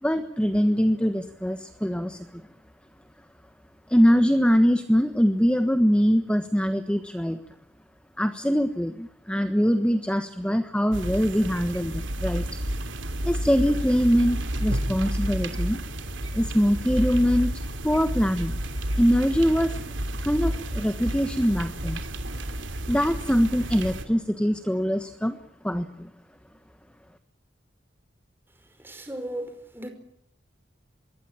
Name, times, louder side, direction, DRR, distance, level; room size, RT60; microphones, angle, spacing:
voice 1, 0.0-2.3 3.9-7.4 8.2-12.4 13.2-15.8 16.3-17.5 17.8-18.6 19.0-19.9 20.2-22.0 22.9-25.4 25.6-26.1, equal, 5° left, 8 dB, 1.3 m, -23 dB
sound 1, 10.9-24.0, right 1 dB, 85° right, 3.0 m, -31 dB
voice 2, 28.8-29.9, right 1 dB, 10° right, 6 dB, 5.3 m, -36 dB
26.0 x 22.5 x 9.0 m, 0.71 s
head